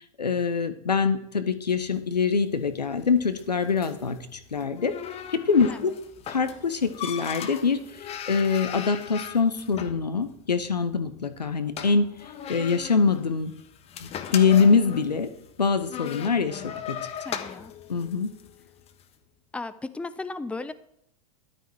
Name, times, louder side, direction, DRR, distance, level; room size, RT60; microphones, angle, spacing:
voice 1, 0.2-4.9 5.3-5.9 6.3-12.1 12.5-13.5 14.0-15.3 15.6-17.1 17.9-18.3, left 5 dB, 85° left, 10 dB, 1.4 m, -24 dB
sound 1, 1.8-19.0, left 9 dB, 30° left, 1.4 m, -39 dB
voice 2, 17.2-17.7 19.5-20.7, left 3 dB, 5° left, 12 dB, 0.8 m, -35 dB
13.5 x 12.0 x 4.8 m, 0.74 s
figure-of-eight pair, 95°, 20 cm